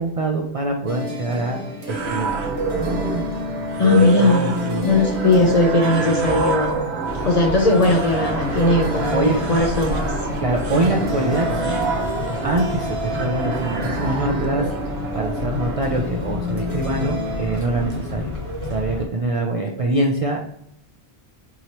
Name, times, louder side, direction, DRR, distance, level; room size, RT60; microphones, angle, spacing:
voice 1, 0.0-1.6 1.9-2.5 4.0-4.9 9.1-9.4 10.4-11.8 12.4-14.7 15.1-18.3 18.6-20.4, right 2 dB, 55° right, 2 dB, 0.3 m, -24 dB
sound 1, 0.9-17.6, left 1 dB, 35° right, 0.8 m, -31 dB
sound 2, 1.9-18.8, right 3 dB, 80° right, 0.9 m, -28 dB
voice 2, 3.8-4.5 4.8-6.8 7.2-10.1, left 2 dB, 50° left, 1 dB, 0.5 m, -18 dB
sound 3, 7.0-19.1, left 1 dB, 65° left, 1.5 m, -29 dB
4.8 x 2.9 x 2.8 m, 0.73 s
omnidirectional pair, 1.1 m